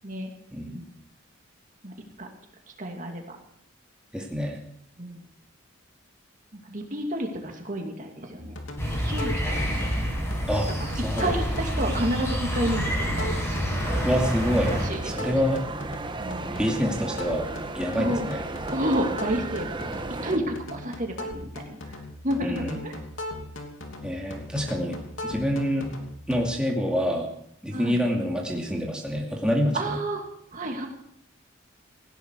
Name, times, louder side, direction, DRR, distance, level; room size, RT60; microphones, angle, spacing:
voice 1, 2.8-3.2 5.0-5.2 6.7-8.5 9.1-9.5 9.8-9.9 10.8-10.9 11.2-13.4 14.7-15.3 16.2-16.4 18.0-18.2 18.7-21.4 21.7-21.8 22.2-23.0 27.7-28.0 29.7-30.2 30.5-30.9, right 1 dB, 40° right, 2 dB, 2.5 m, -30 dB
voice 2, 4.1-4.6 10.5-10.7 11.0-11.4 11.8-12.0 14.0-14.7 15.0-15.6 16.6-17.5 17.7-18.4 20.3-20.5 22.4-22.8 24.0-25.0 25.2-25.9 26.3-27.3 27.6-30.0, equal, 5° right, -1 dB, 2.5 m, -26 dB
sound 1, 8.4-26.5, left 1 dB, 70° left, 3.0 m, -38 dB
sound 2, 8.8-14.9, equal, 15° left, 5.4 m, -28 dB
sound 3, 13.8-20.4, right 2 dB, 25° right, 1.0 m, -34 dB
18.5 x 16.5 x 4.8 m, 0.70 s
head